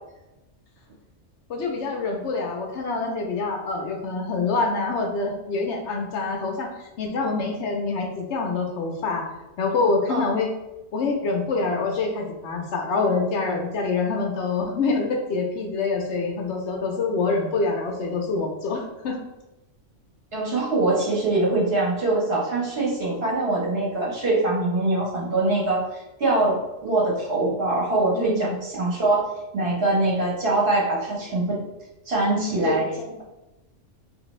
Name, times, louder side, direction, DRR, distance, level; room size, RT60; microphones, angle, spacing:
voice 1, 1.5-9.3 9.6-10.5 10.9-19.2 28.1-28.5 32.6-33.2, left 3 dB, 70° left, 2 dB, 0.8 m, -26 dB
voice 2, 20.3-31.6 32.1-32.9, right 2 dB, 55° right, -4 dB, 1.1 m, -23 dB
3.3 x 2.5 x 3.0 m, 0.99 s
omnidirectional pair, 1.3 m